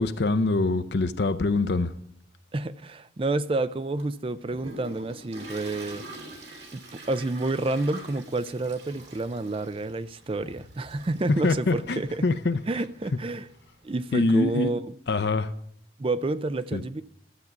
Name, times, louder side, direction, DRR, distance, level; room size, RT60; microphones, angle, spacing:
voice 1, 0.0-1.9 11.4-12.6 14.1-14.7 15.1-15.5 16.7-16.8, left 3 dB, 65° left, 0.6 m, -24 dB
voice 2, 2.5-6.0 6.7-12.3 12.7-13.5 13.8-14.8 16.0-17.0, right 2 dB, 30° right, 0.4 m, -29 dB
Toilet flush, 4.0-14.2, right 1 dB, 60° right, 3.1 m, -45 dB
13.0 x 8.2 x 6.0 m
head